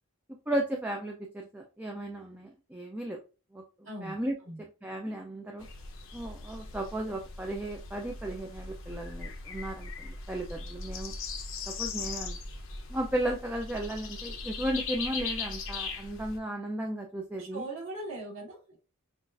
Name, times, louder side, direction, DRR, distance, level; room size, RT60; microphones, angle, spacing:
voice 1, 0.5-3.2 3.5-3.6 4.0-4.3 4.8-5.7 6.1-11.1 11.7-12.4 12.9-17.6, right 1 dB, 10° right, 1 dB, 0.3 m, -35 dB
voice 2, 3.8-4.2 4.5-4.6 17.4-18.8, right 2 dB, 65° right, -5 dB, 2.4 m, -40 dB
sound 1, 5.6-16.4, left 4 dB, 65° left, 0.7 m, -39 dB
5.8 x 2.4 x 2.6 m, 0.32 s
head